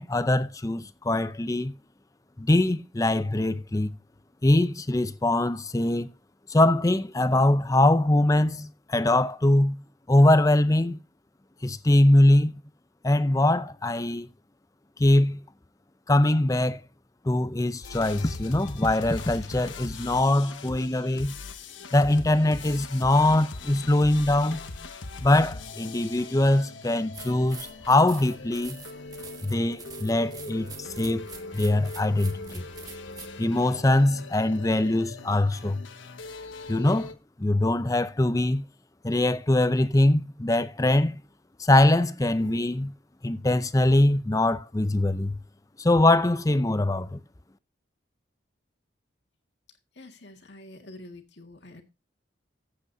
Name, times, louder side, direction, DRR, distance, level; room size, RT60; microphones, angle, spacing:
voice 1, 0.0-1.7 2.4-3.9 4.4-6.1 6.5-9.8 10.1-11.0 11.6-12.5 13.0-14.3 15.0-15.4 16.1-16.8 17.2-21.3 21.9-24.6 25.2-28.8 29.4-31.3 31.5-32.7 33.4-35.8 36.7-37.1 37.4-38.6 39.0-41.2 41.6-42.9 43.2-45.3 45.8-47.2, left 1 dB, 15° left, 0.5 m, -22 dB
sound 1, 17.8-37.1, left 3 dB, 80° left, 1.2 m, -41 dB
sound 2, 27.1-33.3, right 5 dB, 20° right, 1.2 m, -46 dB
voice 2, 49.9-51.8, left 1 dB, 60° left, 1.9 m, -46 dB
15.0 x 8.0 x 2.7 m
head